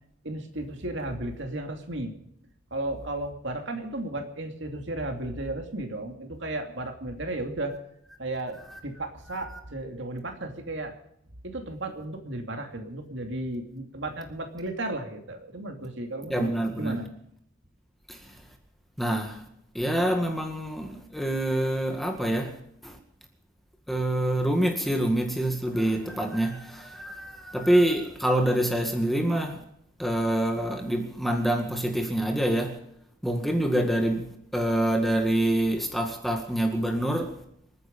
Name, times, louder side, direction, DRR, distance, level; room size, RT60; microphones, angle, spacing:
voice 1, 0.2-2.1 2.7-7.8 8.2-10.9 11.4-17.1, right 2 dB, 60° right, 4 dB, 2.7 m, -34 dB
voice 2, 16.3-17.1 18.1-18.4 19.0-19.4 19.7-22.5 22.8-23.0 23.9-29.6 30.0-32.8 33.2-34.3 34.5-37.3, right 1 dB, ahead, 3 dB, 1.9 m, -26 dB
28.0 x 9.4 x 5.4 m, 0.73 s
head